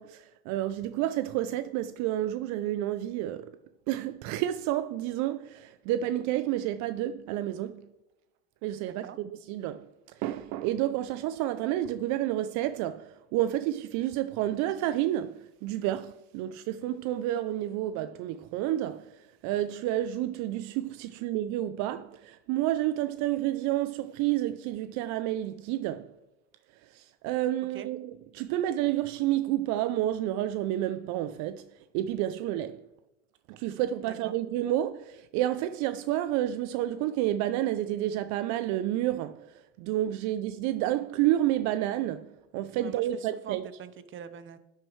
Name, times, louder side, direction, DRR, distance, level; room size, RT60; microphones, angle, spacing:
voice 1, 0.0-3.6 3.9-7.9 8.6-26.1 26.7-32.8 33.5-43.7, right 13 dB, 70° right, 0.5 m, -30 dB
voice 2, 34.0-34.4 42.8-44.6, right 8 dB, 40° right, 0.9 m, -43 dB
10.5 x 8.0 x 3.2 m
supercardioid pair, 100°, 30 cm